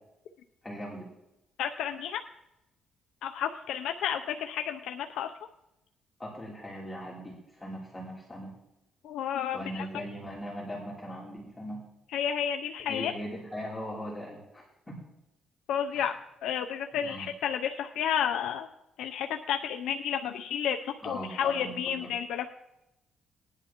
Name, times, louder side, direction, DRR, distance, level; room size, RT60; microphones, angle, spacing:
voice 1, 0.6-1.1 6.2-8.5 9.5-11.8 12.9-14.9 15.9-16.1 16.9-17.3 21.0-22.1, equal, 15° left, -5 dB, 3.3 m, -40 dB
voice 2, 1.6-2.2 3.2-5.3 9.0-9.9 12.1-13.1 15.7-16.2 16.4-18.7 19.0-22.5, left 8 dB, 85° left, 5 dB, 0.6 m, -31 dB
20.0 x 10.5 x 3.0 m, 0.90 s
cardioid pair, 90°, 0 cm